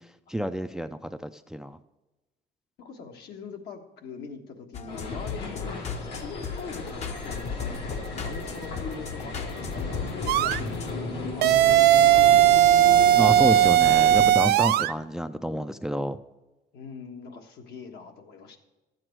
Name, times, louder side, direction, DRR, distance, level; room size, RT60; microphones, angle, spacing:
voice 1, 0.0-1.8 13.1-16.2, right 1 dB, 5° right, 11 dB, 0.4 m, -29 dB
voice 2, 2.8-12.8 16.7-18.6, left 5 dB, 70° left, 3 dB, 1.5 m, -42 dB
sound 1, 4.7-10.9, left 6 dB, 40° left, 0.8 m, -37 dB
sound 2, 4.9-14.3, left 3 dB, 90° left, 3.4 m, -35 dB
sound 3, 10.3-10.6 11.4-14.9, right 12 dB, 70° right, 0.4 m, -18 dB
12.5 x 7.9 x 4.6 m, 1.1 s
cardioid pair, 110°, 17 cm